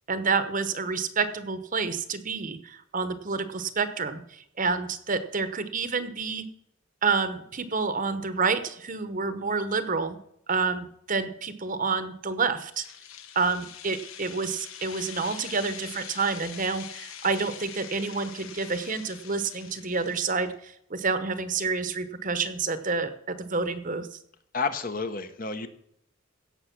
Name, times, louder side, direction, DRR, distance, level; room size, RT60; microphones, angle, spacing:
voice 1, 0.1-6.4 7.0-10.2 10.5-12.8 13.3-24.2, right 4 dB, 35° right, 11 dB, 0.9 m, -29 dB
sound 1, 12.6-20.5, left 9 dB, 70° left, 1.2 m, -44 dB
voice 2, 24.5-25.7, left 4 dB, 40° left, 9 dB, 1.0 m, -30 dB
16.5 x 6.6 x 6.0 m, 0.73 s
head